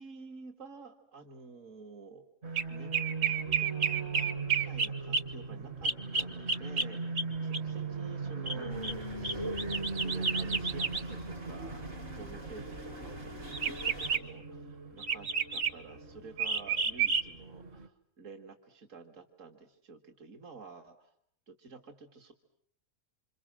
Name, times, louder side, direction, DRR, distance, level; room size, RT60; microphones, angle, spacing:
voice 1, 0.0-2.2 2.7-2.9 3.6-9.5 10.0-21.1 21.5-22.3, right 4 dB, 70° right, 3 dB, 2.3 m, -50 dB
sound 1, 2.4-17.9, right 5 dB, 55° right, 1.7 m, -33 dB
sound 2, 8.7-14.2, right 1 dB, 85° right, 5.3 m, -46 dB
28.5 x 26.5 x 7.6 m, 0.66 s
omnidirectional pair, 1.4 m